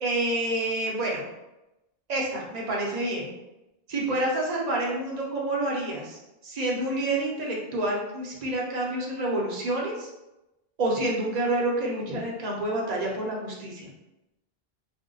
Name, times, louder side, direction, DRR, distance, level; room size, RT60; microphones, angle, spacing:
voice 1, 0.0-1.2 2.1-3.3 3.9-10.1 10.8-13.9, right 1 dB, 45° right, -2 dB, 0.7 m, -28 dB
2.5 x 2.1 x 3.8 m, 0.96 s
omnidirectional pair, 1.0 m